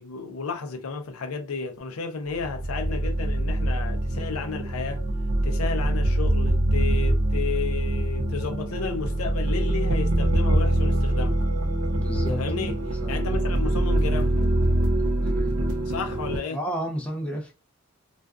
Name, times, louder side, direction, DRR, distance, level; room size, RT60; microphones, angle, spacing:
voice 1, 0.0-5.0 5.4-11.4 12.3-14.5 15.9-16.6, left 4 dB, 80° left, 0.5 m, -32 dB
sound 1, 2.4-16.4, right 1 dB, 75° right, 0.5 m, -24 dB
voice 2, 12.0-12.7 13.0-13.1 15.2-15.6 16.5-17.5, equal, 5° left, 0.4 m, -32 dB
2.4 x 2.2 x 2.3 m
head